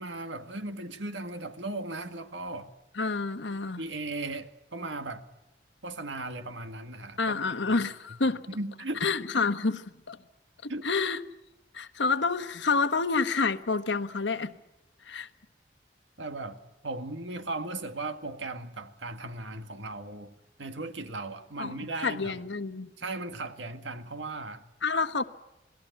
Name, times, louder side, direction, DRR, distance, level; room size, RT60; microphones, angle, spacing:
voice 1, 0.0-2.7 3.8-5.2 5.8-7.8 8.5-9.1 10.7-10.9 16.2-20.3 20.6-22.4 23.0-24.6, right 2 dB, 90° right, 1.9 m, -37 dB
voice 2, 3.0-3.8 7.2-8.4 9.0-10.2 10.6-11.2 11.7-14.5 15.1-15.3 21.6-21.8 22.0-22.9 24.8-25.2, left 4 dB, 80° left, 1.2 m, -28 dB
27.5 x 19.0 x 9.2 m
head